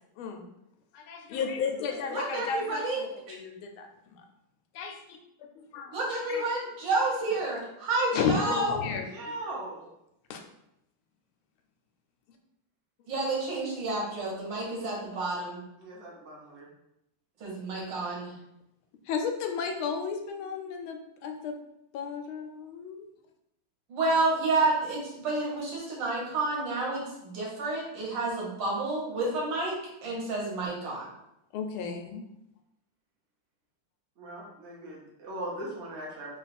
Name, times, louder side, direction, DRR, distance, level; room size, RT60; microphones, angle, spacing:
voice 1, 0.9-4.2 4.7-5.2 5.6-5.9 6.3-6.4 8.1-9.1 10.3-10.4 19.1-21.5 21.9-23.1 31.5-32.3, left 5 dB, 85° left, 4 dB, 1.4 m, -33 dB
voice 2, 2.1-3.0 5.9-8.8 13.1-15.6 17.4-18.3 23.9-29.7 30.0-31.1, right 2 dB, 65° right, -3 dB, 1.7 m, -30 dB
voice 3, 9.0-9.9 15.8-16.7 34.2-36.4, right 1 dB, 45° right, -3 dB, 1.0 m, -39 dB
3.7 x 2.3 x 4.1 m, 0.83 s
omnidirectional pair, 2.2 m